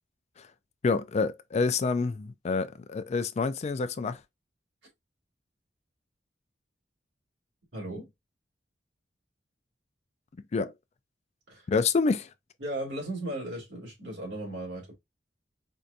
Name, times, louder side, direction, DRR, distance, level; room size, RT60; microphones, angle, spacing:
voice 1, 0.8-4.2 10.5-10.7 11.7-12.3, left 4 dB, 40° left, 0.3 m, -27 dB
voice 2, 7.7-8.1 11.5-11.7 12.6-14.9, right 1 dB, 85° right, 2.2 m, -36 dB
4.5 x 2.5 x 2.6 m
head